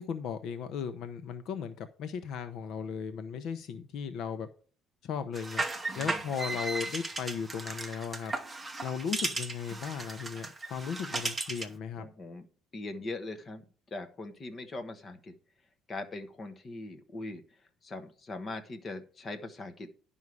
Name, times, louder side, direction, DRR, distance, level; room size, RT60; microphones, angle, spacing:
voice 1, 0.0-4.5 5.0-5.6 5.9-8.3 8.8-12.1, left 7 dB, 55° left, 10 dB, 0.8 m, -36 dB
sound 1, 5.3-11.8, right 2 dB, 10° right, 0.9 m, -36 dB
voice 2, 5.9-6.3 12.0-12.4 12.7-13.6 13.9-15.3 15.9-19.9, left 2 dB, 25° left, 7 dB, 1.2 m, -41 dB
11.0 x 5.5 x 4.8 m, 0.40 s
cardioid pair, 170°, 0 cm